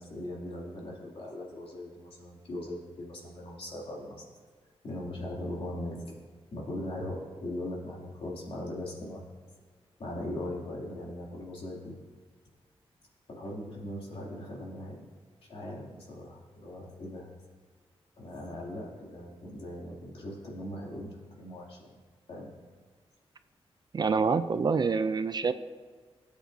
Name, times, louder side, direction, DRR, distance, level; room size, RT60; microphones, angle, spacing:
voice 1, 0.0-4.3 4.8-6.0 6.5-9.2 10.0-12.0 13.3-15.0 15.4-17.2 18.2-21.9 22.3-22.5, left 1 dB, 65° left, -3 dB, 2.7 m, -39 dB
voice 2, 23.9-25.5, right 5 dB, 40° right, 11 dB, 0.4 m, -26 dB
17.5 x 8.2 x 2.7 m, 1.5 s
wide cardioid pair, 125°, 10 cm